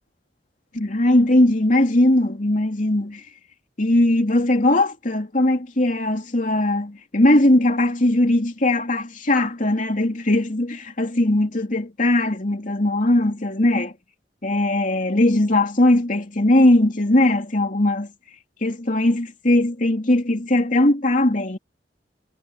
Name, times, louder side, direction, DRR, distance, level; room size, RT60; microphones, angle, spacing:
voice 1, 0.7-3.2 3.8-13.9 14.4-18.1 18.6-21.6, left 1 dB, 45° left, 2.9 m, -19 dB
head